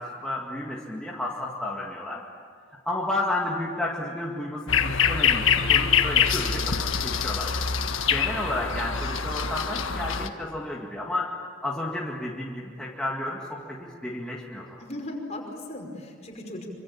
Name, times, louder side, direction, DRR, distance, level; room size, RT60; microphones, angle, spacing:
voice 1, 0.0-2.2 2.9-7.5 8.1-11.3 11.6-14.8, left 1 dB, 5° left, -4 dB, 2.1 m, -32 dB
sound 1, 4.7-10.3, left 7 dB, 70° left, 1.6 m, -24 dB
voice 2, 14.7-16.7, left 1 dB, 30° left, 0 dB, 5.4 m, -37 dB
26.5 x 26.0 x 8.7 m, 2.1 s
head